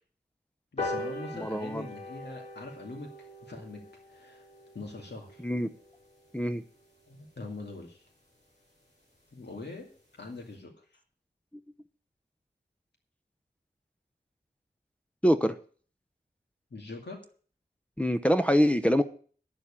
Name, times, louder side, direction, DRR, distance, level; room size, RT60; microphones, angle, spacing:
voice 1, 0.7-3.1 3.4-4.4 4.7-5.5 7.1-8.1 9.3-9.9 10.2-10.7 16.7-17.2, left 3 dB, 85° left, 2 dB, 2.4 m, -42 dB
sound 1, 0.8-7.5 7.9-8.0 8.4-8.5 8.7-8.8 9.1-9.2 9.5-9.8 10.2-10.3, left 2 dB, 45° left, 5.8 m, -41 dB
voice 2, 1.3-1.8 5.4-5.7 6.3-6.6 15.2-15.6 18.0-19.0, equal, 5° left, 6 dB, 0.8 m, -24 dB
10.0 x 7.1 x 8.5 m, 0.43 s
wide cardioid pair, 45°, 17 cm